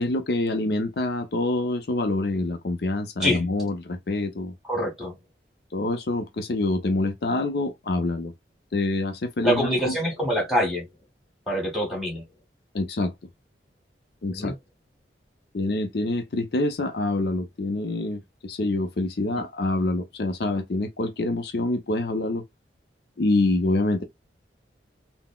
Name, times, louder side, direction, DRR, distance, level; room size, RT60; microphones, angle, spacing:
voice 1, 0.0-4.5 5.7-8.3 8.7-9.9 12.7-13.1 14.2-14.6 15.5-22.4 23.2-24.0, left 2 dB, 60° left, 0.5 m, -26 dB
voice 2, 4.6-5.1 9.4-10.9 11.5-12.2 14.3-14.5, equal, ahead, 1.6 m, -25 dB
3.8 x 2.0 x 2.2 m
head